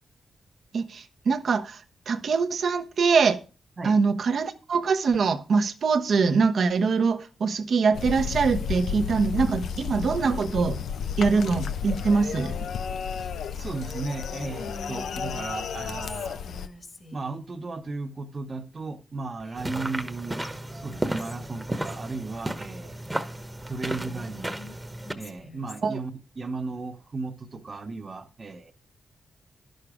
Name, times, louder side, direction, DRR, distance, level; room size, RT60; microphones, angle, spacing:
voice 1, 0.7-3.4 3.8-10.8 11.2-12.6 25.8-26.0, right 5 dB, 65° right, 0.9 m, -23 dB
sound 1, 7.9-16.7, left 7 dB, 80° left, 0.7 m, -32 dB
voice 2, 13.2-16.4 17.1-20.5 20.7-23.0 23.7-24.8 25.1-28.7, right 3 dB, 45° right, 1.0 m, -35 dB
Whispering, 14.5-17.4 19.4-20.1 20.4-20.5 20.9-22.1 23.9-26.0, left 2 dB, 40° left, 1.7 m, -46 dB
sound 2, 19.6-25.1, right 1 dB, 15° right, 1.1 m, -33 dB
10.5 x 6.6 x 4.9 m
cardioid pair, 65°, 0 cm